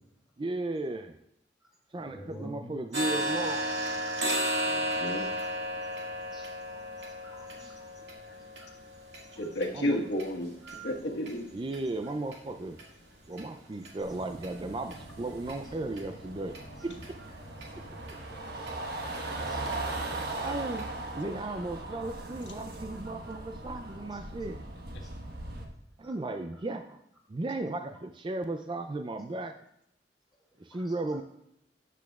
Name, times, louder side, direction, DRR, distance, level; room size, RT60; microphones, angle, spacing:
voice 1, 0.4-1.2 1.9-3.6 9.7-10.0 11.5-12.8 13.3-16.6 16.8-17.0 20.4-20.9 21.1-24.6 26.0-27.0 27.3-29.5 30.6-31.2, right 2 dB, 30° right, 7 dB, 0.4 m, -35 dB
voice 2, 1.9-2.7 4.3-4.7 6.3-7.5 7.8-7.9 8.6-8.7 10.7-10.9 19.3-19.6 26.0-26.1 30.7-30.8, right 2 dB, ahead, -4 dB, 2.7 m, -47 dB
sound 1, 2.9-10.7 11.2-11.3 11.7-11.9 12.3-12.4 12.8-12.9 13.4-13.5 13.8-13.9 14.4-14.5 14.9-15.0 15.5-15.6 16.0-16.1 16.5-16.6 17.0-17.1 17.6-17.7 18.1-18.2 18.7-18.8 19.1-19.2 19.7-19.8 20.2-20.3 20.8-20.9, equal, 80° right, 2.0 m, -34 dB
voice 3, 4.6-5.3 9.4-10.5 10.8-11.5, left 1 dB, 80° left, 1 dB, 1.5 m, -32 dB
sound 2, 14.0-25.6, right 2 dB, 65° right, 1.3 m, -39 dB
12.5 x 8.3 x 2.4 m, 0.77 s
head